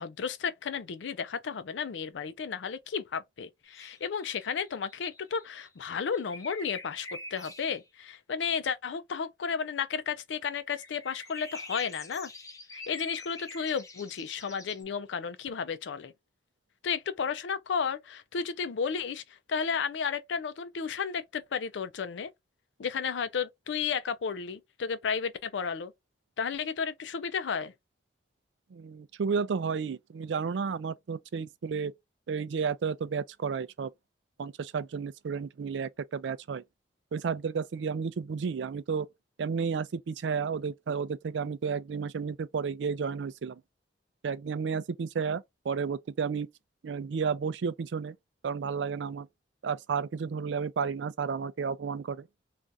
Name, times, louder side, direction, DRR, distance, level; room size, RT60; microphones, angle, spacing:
voice 1, 0.0-12.3 12.7-16.1 16.8-22.3 22.8-25.9 26.4-27.7, left 6 dB, 90° left, 0.4 m, -33 dB
sound 1, 3.6-7.8 10.8-14.8, left 2 dB, 20° left, 0.5 m, -45 dB
voice 2, 28.7-31.9 32.3-33.9 34.4-36.6 37.1-39.1 39.4-43.6 44.2-46.5 46.8-48.2 48.4-49.3 49.6-52.3, right 5 dB, 80° right, 0.4 m, -32 dB
2.6 x 2.4 x 3.2 m
head